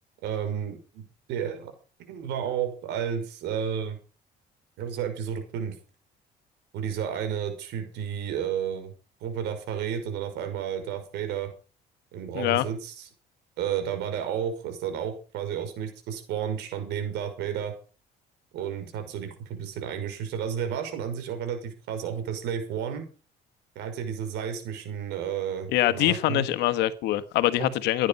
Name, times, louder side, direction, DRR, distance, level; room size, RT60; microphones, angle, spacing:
voice 1, 0.2-1.7 2.1-4.0 4.8-5.7 6.7-8.9 9.2-11.5 12.1-13.1 13.6-17.7 18.5-23.0 23.8-26.5 27.6-27.7, right 8 dB, 85° right, 5.7 m, -32 dB
voice 2, 12.3-12.6 25.7-28.1, left 14 dB, 85° left, 1.4 m, -24 dB
17.0 x 10.5 x 5.5 m
cardioid pair, 110°, 17 cm